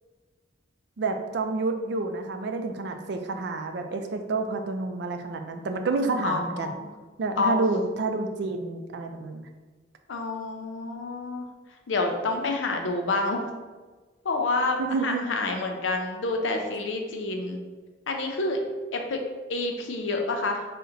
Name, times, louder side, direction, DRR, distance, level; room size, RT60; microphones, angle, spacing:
voice 1, 1.0-6.7 7.2-9.5 14.8-15.2, right 3 dB, 65° right, 6 dB, 0.4 m, -29 dB
voice 2, 6.2-6.8 7.4-7.6 10.1-11.4 11.9-13.4 14.2-17.6 18.1-18.6 18.9-19.2 19.5-20.7, left 3 dB, 90° left, 3 dB, 0.5 m, -28 dB
3.8 x 2.1 x 3.9 m, 1.3 s
head